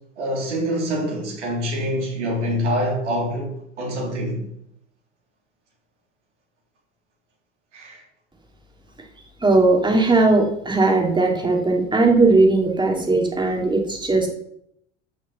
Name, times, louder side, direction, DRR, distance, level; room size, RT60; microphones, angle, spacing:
voice 1, 0.2-4.4 7.7-8.0, equal, 75° right, 3.5 m, -25 dB
voice 2, 9.4-14.3, right 3 dB, 10° right, 2.9 m, -18 dB
13.0 x 6.3 x 5.7 m
figure-of-eight pair, 70°, 36 cm